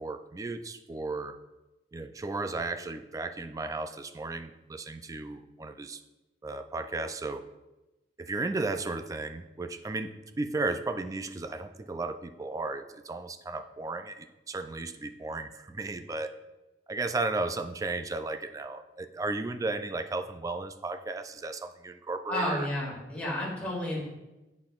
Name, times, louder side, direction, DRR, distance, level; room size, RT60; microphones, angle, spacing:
voice 1, 0.0-1.4 1.9-6.0 6.4-7.5 8.2-16.4 16.9-22.7, right 3 dB, 20° right, 9 dB, 0.3 m, -34 dB
voice 2, 22.3-24.0, left 1 dB, 10° left, -6 dB, 2.0 m, -31 dB
8.6 x 5.9 x 2.4 m, 1.0 s
head